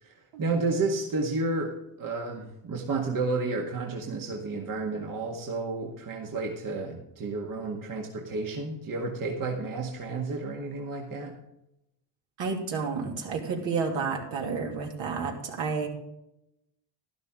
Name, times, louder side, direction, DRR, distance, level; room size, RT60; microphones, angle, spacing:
voice 1, 0.0-11.4, right 3 dB, 45° right, 0 dB, 2.0 m, -31 dB
voice 2, 12.4-15.9, right 5 dB, 65° right, 0 dB, 3.0 m, -30 dB
12.0 x 11.5 x 3.8 m, 0.86 s
supercardioid pair, 80°, 46 cm